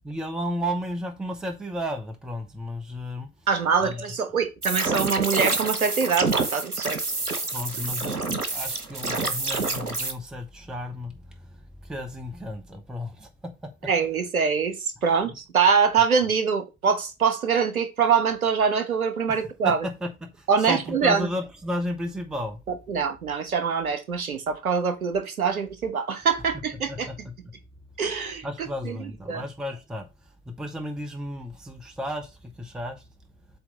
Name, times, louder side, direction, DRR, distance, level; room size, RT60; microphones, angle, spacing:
voice 1, 0.0-3.3 3.8-4.1 7.5-13.5 19.3-19.4 19.6-20.1 20.3-22.6 26.9-27.3 28.4-33.1, equal, ahead, 0.6 m, -33 dB
voice 2, 3.5-7.0 13.9-19.9 20.5-21.3 22.9-27.1 28.0-28.5 28.8-29.4, right 6 dB, 70° right, 1.4 m, -24 dB
sound 1, 4.6-10.1, right 3 dB, 90° right, 0.9 m, -27 dB
7.8 x 2.9 x 5.3 m
figure-of-eight pair, 95°, 44 cm